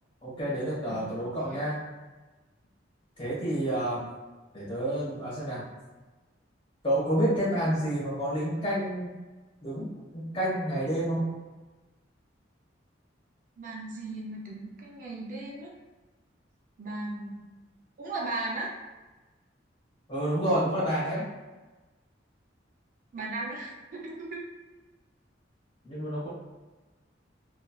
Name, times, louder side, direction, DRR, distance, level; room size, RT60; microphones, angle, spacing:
voice 1, 0.2-1.8 3.2-4.1 4.5-5.7 6.8-9.1 9.6-11.3 20.1-21.3 25.8-26.3, right 1 dB, 30° left, -8 dB, 1.4 m, -29 dB
voice 2, 0.9-1.6 13.6-15.7 16.8-17.4 18.0-18.7 23.1-24.4, right 2 dB, 45° right, -3 dB, 0.4 m, -37 dB
3.1 x 2.3 x 2.3 m, 1.2 s
head